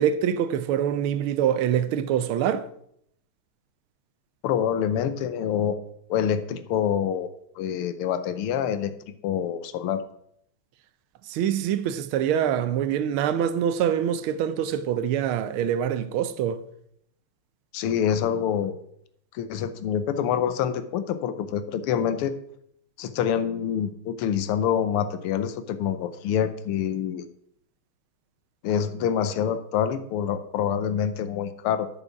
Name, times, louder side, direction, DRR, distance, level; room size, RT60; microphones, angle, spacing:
voice 1, 0.0-2.7 11.3-16.6, right 9 dB, 75° right, 1.5 m, -25 dB
voice 2, 4.4-5.8 6.1-7.3 7.6-8.9 9.2-10.0 17.7-18.7 19.3-22.3 23.0-27.3 28.6-31.9, left 8 dB, 80° left, 1.7 m, -26 dB
8.3 x 7.1 x 5.8 m
omnidirectional pair, 2.4 m